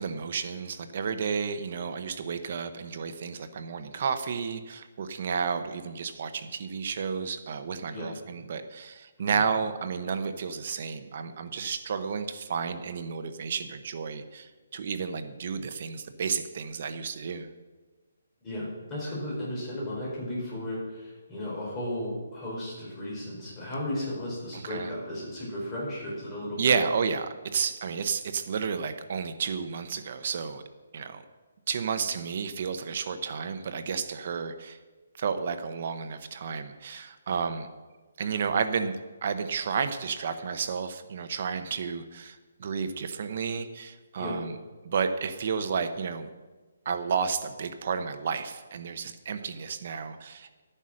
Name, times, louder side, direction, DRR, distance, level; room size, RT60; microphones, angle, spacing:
voice 1, 0.0-17.5 24.5-24.9 26.6-30.6 30.9-31.2 31.7-34.8 35.2-37.7 38.2-38.9 39.2-44.6 44.8-46.3 46.8-50.6, right 6 dB, 35° right, 9 dB, 0.8 m, -31 dB
voice 2, 18.4-26.8 44.2-44.3, left 1 dB, 10° left, -6 dB, 4.3 m, -35 dB
12.5 x 9.9 x 6.3 m, 1.3 s
hypercardioid pair, 175°, 0 cm